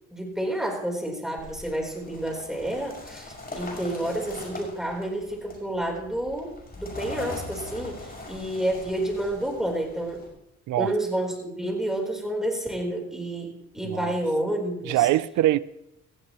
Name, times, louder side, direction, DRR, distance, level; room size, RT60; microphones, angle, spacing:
voice 1, 0.1-10.2 10.8-15.1, right 1 dB, ahead, 4.0 m, -30 dB
sound 1, 1.4-10.3, left 2 dB, 30° left, 6.0 m, -41 dB
voice 2, 14.9-15.6, right 15 dB, 80° right, 0.5 m, -23 dB
17.0 x 15.0 x 3.1 m
cardioid pair, 90°, 30 cm